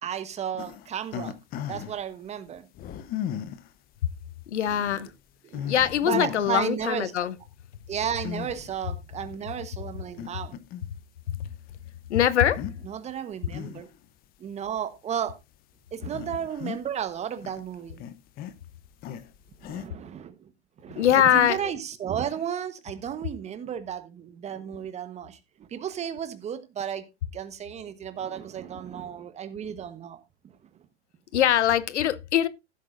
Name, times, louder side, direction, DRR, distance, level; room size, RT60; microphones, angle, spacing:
voice 1, 0.0-1.3 1.7-2.7 4.7-4.8 5.4-7.1 7.9-10.5 12.8-13.9 14.4-15.3 15.9-18.0 19.6-20.5 20.8-27.0 27.3-30.2, right 9 dB, 20° right, 1.1 m, -33 dB
sound 1, 0.6-2.0 2.7-3.7 4.4-4.5 5.0-5.1 5.5-6.5 6.9-7.2 8.2-8.8 9.3-9.4 10.1-11.0 11.3-11.5 12.4-12.8 13.2-14.0 14.7-14.8 15.4-15.6 15.9-17.1 17.4-19.9, left 10 dB, 25° left, 0.8 m, -36 dB
voice 2, 4.5-5.1 5.7-7.4 11.3-11.4 12.1-12.7 21.0-21.7 31.3-32.5, left 10 dB, 75° left, 0.9 m, -22 dB
15.5 x 8.1 x 2.5 m
hypercardioid pair, 120°, 35 cm